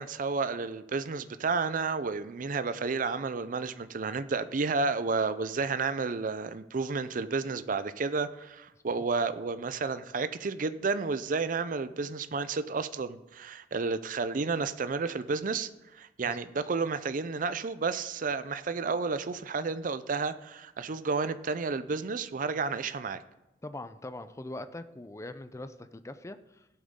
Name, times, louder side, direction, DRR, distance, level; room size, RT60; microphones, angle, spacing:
voice 1, 0.0-23.2, right 4 dB, 50° right, 13 dB, 0.5 m, -31 dB
voice 2, 23.6-26.7, left 1 dB, 15° left, 11 dB, 0.5 m, -42 dB
16.5 x 8.6 x 3.7 m, 0.95 s
head